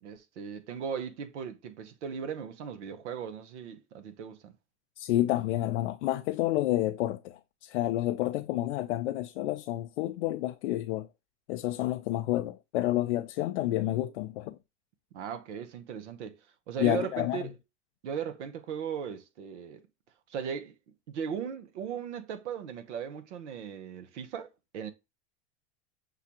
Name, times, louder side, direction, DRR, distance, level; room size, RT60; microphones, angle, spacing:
voice 1, 0.0-4.5 15.1-16.4 16.7-17.5 18.0-19.8 20.3-20.8 21.1-24.9, right 7 dB, 80° right, 1.0 m, -37 dB
voice 2, 5.0-11.1 11.5-14.6 16.8-17.4, left 15 dB, 75° left, 0.6 m, -29 dB
6.8 x 2.4 x 2.8 m
hypercardioid pair, 105°, 35 cm